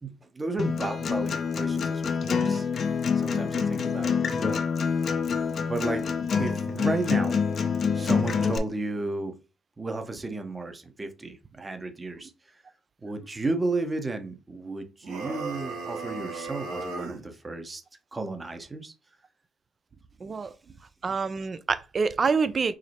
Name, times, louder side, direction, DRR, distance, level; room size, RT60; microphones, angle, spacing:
voice 1, 0.0-2.7 3.1-4.6 5.7-6.1 6.4-7.3 7.9-9.3 9.8-12.6 13.0-17.8 18.1-18.9, right 2 dB, 25° right, 0.8 m, -33 dB
Acoustic guitar, 0.6-8.6, left 6 dB, 55° left, 0.6 m, -26 dB
sound 1, 15.0-17.3, right 3 dB, 85° right, 1.1 m, -35 dB
voice 2, 20.2-20.5 21.0-22.7, right 5 dB, 40° right, 0.5 m, -26 dB
4.9 x 2.0 x 4.2 m
cardioid pair, 85°, 0 cm